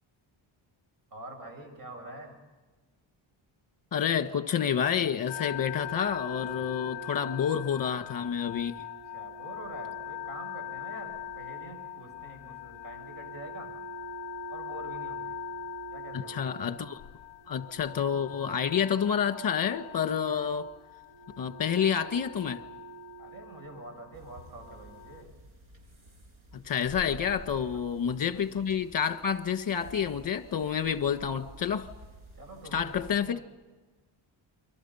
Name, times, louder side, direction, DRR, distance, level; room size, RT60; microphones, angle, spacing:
voice 1, 1.1-2.3 9.1-13.7 14.5-15.4 15.9-16.3 23.2-25.3 32.4-33.1, right 1 dB, 45° right, 7.6 m, -46 dB
voice 2, 3.9-8.8 16.1-17.0 17.5-20.7 21.4-22.6 26.5-31.9 32.7-33.4, left 8 dB, 40° left, 1.7 m, -29 dB
sound 1, 5.3-25.2, left 7 dB, 60° left, 0.7 m, -41 dB
sound 2, 24.1-33.1, right 1 dB, 75° right, 7.1 m, -50 dB
29.5 x 24.0 x 5.8 m
wide cardioid pair, 120°, 49 cm